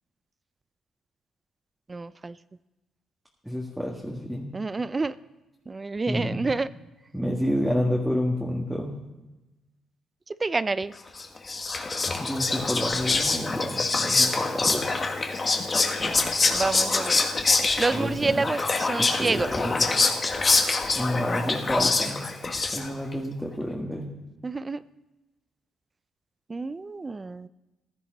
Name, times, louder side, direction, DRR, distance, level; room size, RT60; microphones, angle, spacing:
voice 1, 1.9-2.4 4.5-5.2 5.7-6.7 10.3-10.9 16.0-16.2 16.5-17.2 17.8-19.5 24.4-24.8 26.5-27.5, right 3 dB, 25° right, 17 dB, 0.4 m, -28 dB
voice 2, 3.4-4.5 6.1-6.4 7.1-9.0 12.2-14.9 16.0-16.2 18.0-18.4 19.0-19.9 21.0-22.2 22.7-24.1, equal, ahead, -1 dB, 1.9 m, -29 dB
Whispering, 11.2-23.1, left 3 dB, 35° left, 1.6 m, -25 dB
15.5 x 13.5 x 4.0 m, 1.0 s
cardioid pair, 90°, 0 cm